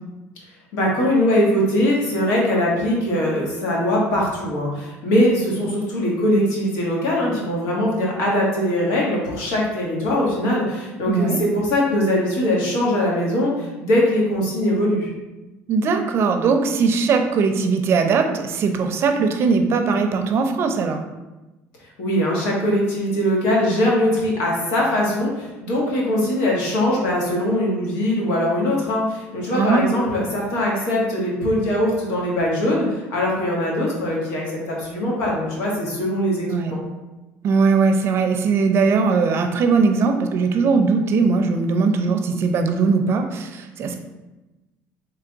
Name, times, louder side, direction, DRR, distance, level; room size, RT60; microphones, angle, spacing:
voice 1, 0.7-15.1 22.0-36.8, left 1 dB, 85° left, -3 dB, 1.4 m, -21 dB
voice 2, 11.1-11.4 15.7-21.0 29.5-29.8 36.5-36.7 37.4-44.0, right 4 dB, 50° right, 6 dB, 0.5 m, -20 dB
3.4 x 3.3 x 3.9 m, 1.1 s
cardioid pair, 115°, 5 cm